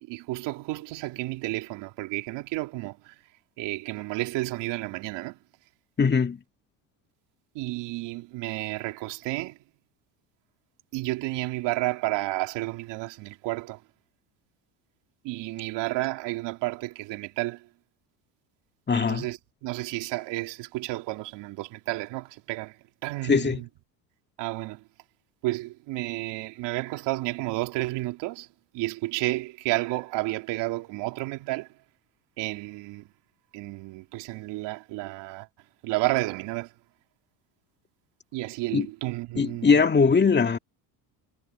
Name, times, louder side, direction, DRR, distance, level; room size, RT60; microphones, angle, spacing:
voice 1, 0.0-3.1 3.6-5.4 7.5-9.6 10.9-13.8 15.2-17.7 18.9-22.8 23.0-23.7 24.4-24.8 25.4-28.5 28.7-31.7 32.4-33.1 33.5-35.5 35.8-36.7 38.3-39.8, right 19 dB, 70° right, 2.8 m, -31 dB
voice 2, 6.0-6.4 18.9-19.3 23.2-23.6 38.7-38.9 39.4-40.6, left 5 dB, 25° left, 2.1 m, -21 dB
supercardioid pair, 95°, 44 cm